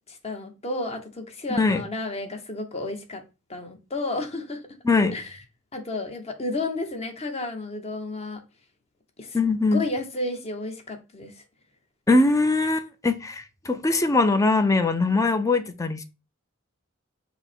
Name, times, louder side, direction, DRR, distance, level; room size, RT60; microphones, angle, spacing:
voice 1, 0.1-3.2 3.5-4.6 5.1-5.4 5.7-8.4 9.2-9.4 9.7-11.3, left 2 dB, 30° left, 0.9 m, -32 dB
voice 2, 1.5-1.8 4.8-5.2 9.3-9.8 12.1-16.0, left 3 dB, 15° left, 0.5 m, -21 dB
5.4 x 2.1 x 4.3 m
head